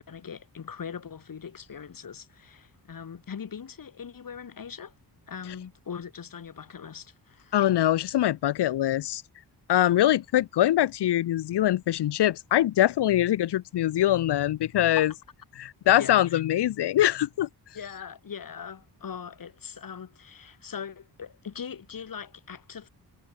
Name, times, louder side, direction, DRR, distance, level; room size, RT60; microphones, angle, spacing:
voice 1, 0.0-4.9 5.3-7.6 15.0-15.1 16.0-16.4 17.7-22.9, left 7 dB, 55° left, 3.5 m, -41 dB
voice 2, 7.5-9.2 9.7-15.1 15.6-17.5, left 13 dB, 75° left, 0.7 m, -23 dB
wide cardioid pair, 180°, 41 cm